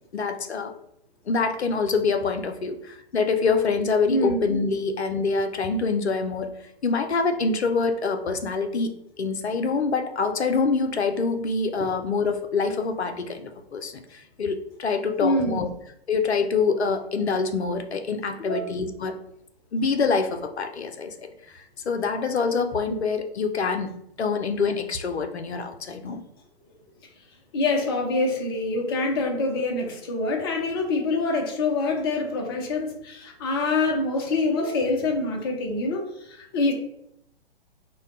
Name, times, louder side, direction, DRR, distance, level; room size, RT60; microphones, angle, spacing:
voice 1, 0.1-0.7 1.3-6.5 6.8-15.7 16.1-19.2 19.7-26.2, left 4 dB, 80° left, 6 dB, 0.5 m, -25 dB
voice 2, 4.1-4.4 15.2-15.6 18.4-18.8 27.5-36.7, left 2 dB, 25° left, 2 dB, 0.4 m, -25 dB
2.2 x 2.2 x 3.6 m, 0.76 s
figure-of-eight pair, 120°, 32 cm